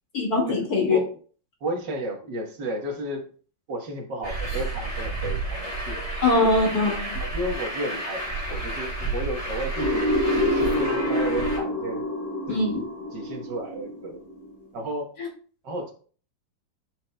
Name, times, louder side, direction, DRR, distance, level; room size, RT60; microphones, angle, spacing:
voice 1, 0.1-1.0 6.2-7.2 12.5-12.9 15.2-15.3, left 2 dB, 50° left, -1 dB, 2.6 m, -22 dB
voice 2, 1.6-3.3 3.7-6.0 6.3-6.4 7.2-12.1 12.5-12.8 13.1-14.2 14.7-15.1 15.6-15.9, right 1 dB, 65° right, 2 dB, 1.9 m, -33 dB
Truck, 4.2-11.6, right 2 dB, 15° left, 2.8 m, -31 dB
sound 1, 9.8-14.5, left 1 dB, 65° left, 4.3 m, -26 dB
11.5 x 6.0 x 2.2 m, 0.42 s
omnidirectional pair, 2.1 m